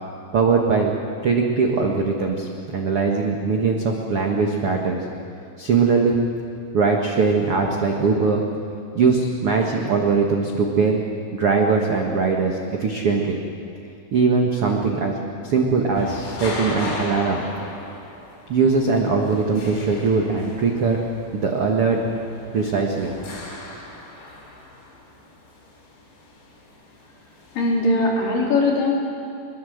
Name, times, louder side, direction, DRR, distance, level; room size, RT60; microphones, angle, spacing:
voice 1, 0.3-0.9 1.2-5.0 5.6-6.2 6.7-8.4 8.9-11.0 11.3-13.4 14.1-15.2 15.4-17.4 18.5-21.0 21.3-22.0 22.5-23.1, right 4 dB, 60° right, 1 dB, 1.5 m, -21 dB
sound 1, 15.9-27.6, left 2 dB, 80° left, 7.1 m, -37 dB
voice 2, 27.6-28.9, left 2 dB, 50° left, -3 dB, 5.3 m, -20 dB
22.5 x 22.0 x 7.9 m, 2.5 s
omnidirectional pair, 5.0 m